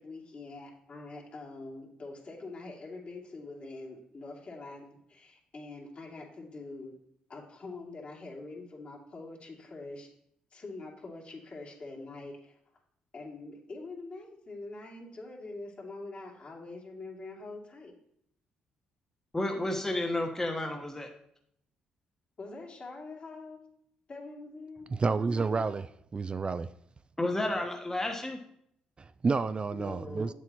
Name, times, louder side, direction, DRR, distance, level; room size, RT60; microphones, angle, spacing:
voice 1, 0.0-7.0 7.3-10.1 10.5-12.6 13.1-17.9 22.4-23.6 24.1-24.9 29.7-30.3, left 3 dB, 45° left, -2 dB, 2.7 m, -44 dB
voice 2, 19.3-21.1 27.2-28.4, left 1 dB, 15° left, 2 dB, 1.3 m, -31 dB
voice 3, 24.9-26.7 29.0-30.3, right 4 dB, 35° right, 14 dB, 0.3 m, -30 dB
8.3 x 7.6 x 3.0 m, 0.71 s
supercardioid pair, 60°, 3 cm